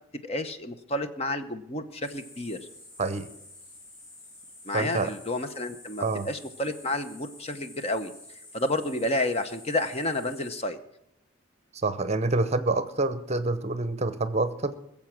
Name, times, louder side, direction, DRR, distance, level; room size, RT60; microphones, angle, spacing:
voice 1, 0.2-2.6 4.6-8.1 8.5-10.8, left 1 dB, 30° left, 9 dB, 0.8 m, -30 dB
sound 1, 2.0-10.6, left 2 dB, 50° left, 4.2 m, -49 dB
voice 2, 4.7-5.1 6.0-6.3 11.8-14.8, right 2 dB, 35° right, 12 dB, 0.8 m, -27 dB
21.0 x 7.3 x 6.0 m, 0.82 s
head